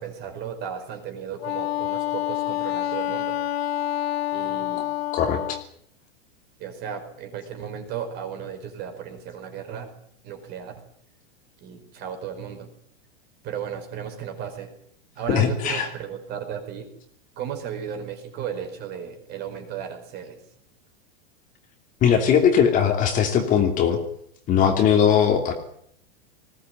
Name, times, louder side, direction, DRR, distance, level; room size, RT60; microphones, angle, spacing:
voice 1, 0.0-3.4 4.3-4.9 6.6-9.9 10.2-10.9 11.6-12.7 13.4-14.7 15.1-16.9 17.4-20.4, right 8 dB, 35° right, 5 dB, 4.9 m, -35 dB
Wind instrument woodwind instrument, 1.4-5.6, left 13 dB, 85° left, 0.9 m, -27 dB
voice 2, 5.1-5.6 15.3-15.9 22.0-24.0 24.5-25.5, left 8 dB, 25° left, 4 dB, 2.9 m, -20 dB
20.0 x 16.5 x 9.4 m, 0.68 s
supercardioid pair, 155°, 30 cm